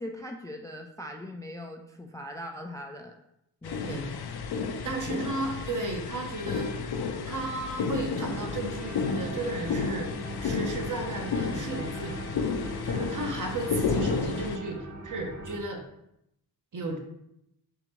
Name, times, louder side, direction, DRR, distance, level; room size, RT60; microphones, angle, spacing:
voice 1, 0.0-3.1 3.6-4.2 4.9-5.2, left 1 dB, 10° left, 3 dB, 0.3 m, -40 dB
sound 1, 3.6-14.6, left 5 dB, 65° left, 0.5 m, -32 dB
voice 2, 4.8-6.9 7.3-10.1 10.4-12.2 12.8-15.8 16.7-17.0, right 2 dB, 45° right, 3 dB, 0.9 m, -34 dB
sound 2, 8.2-15.6, right 1 dB, 70° right, 1.2 m, -41 dB
3.7 x 3.3 x 3.1 m, 0.81 s
cardioid pair, 50°, 41 cm